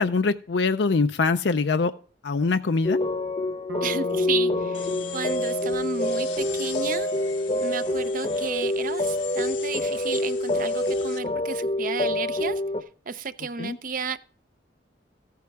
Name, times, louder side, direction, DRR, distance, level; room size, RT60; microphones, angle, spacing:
voice 1, 0.0-1.9 2.2-3.0 13.6-13.8, left 4 dB, 70° left, 0.5 m, -23 dB
sound 1, 2.8-12.8, left 1 dB, 30° left, 0.8 m, -26 dB
Bass guitar, 3.7-7.8, left 1 dB, 75° right, 1.1 m, -39 dB
voice 2, 3.8-7.1 7.6-12.6 13.1-14.2, right 5 dB, 50° right, 0.6 m, -32 dB
sound 2, 4.7-11.2, left 10 dB, 90° left, 1.3 m, -41 dB
14.5 x 9.3 x 3.6 m
head